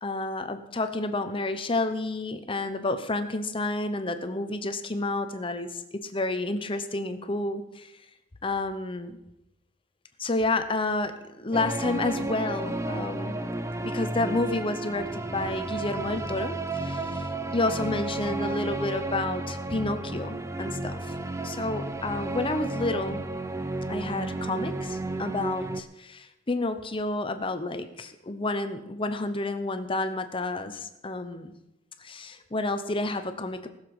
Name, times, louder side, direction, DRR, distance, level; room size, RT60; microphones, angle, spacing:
voice 1, 0.0-7.9 8.4-9.2 10.2-13.4 13.8-21.0 21.4-23.2 23.9-31.5 32.0-33.7, left 2 dB, 25° left, 9 dB, 0.8 m, -30 dB
sound 1, 11.5-25.8, right 2 dB, 15° right, 0.6 m, -32 dB
20.0 x 7.0 x 4.8 m, 0.88 s
head